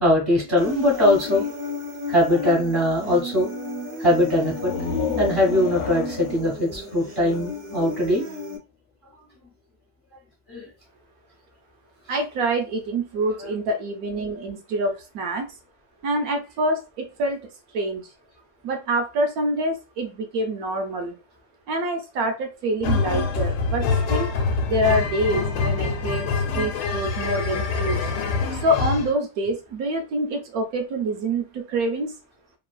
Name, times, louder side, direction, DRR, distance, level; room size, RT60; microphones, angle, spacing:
voice 1, 0.0-1.5 2.1-3.5 4.0-4.7 5.2-8.2 10.5-10.6, left 1 dB, 30° left, -3 dB, 0.4 m, -21 dB
Human voice, 0.6-8.6, left 2 dB, 45° right, 0.5 m, -33 dB
sound 1, 4.5-8.1, left 6 dB, 70° left, 0.9 m, -32 dB
voice 2, 12.1-15.5 16.0-17.4 17.7-18.1 18.6-21.2 21.7-24.3 24.7-28.1 28.5-32.1, right 1 dB, 70° right, 4 dB, 0.9 m, -26 dB
sound 2, 22.8-29.1, left 4 dB, 90° left, 1.3 m, -25 dB
3.0 x 2.2 x 2.3 m, 0.29 s
omnidirectional pair, 1.9 m